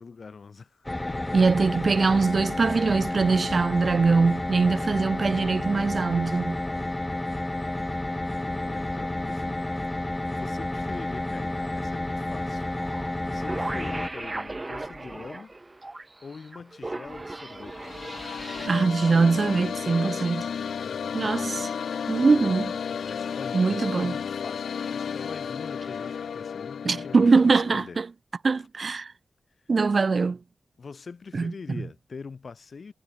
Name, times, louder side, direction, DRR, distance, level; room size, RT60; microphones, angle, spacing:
voice 1, 0.0-2.2 4.6-5.0 8.4-9.7 10.3-12.7 13.2-15.5 16.2-17.9 20.7-21.5 22.9-28.0 30.8-32.9, left 5 dB, 60° left, 4.9 m, -43 dB
sound 1, 0.8-14.1, left 1 dB, 20° left, 1.0 m, -30 dB
voice 2, 1.3-6.6 18.7-20.4 21.1-21.7 22.1-22.7 23.5-24.1 26.8-28.1 28.4-29.1 29.7-30.4 31.3-31.5, right 4 dB, 55° right, 1.5 m, -22 dB
sound 2, 12.8-13.1 13.4-18.7, right 2 dB, 30° right, 1.1 m, -37 dB
sound 3, 17.5-27.8, left 7 dB, 85° left, 2.9 m, -33 dB
cardioid pair, 55°, 0 cm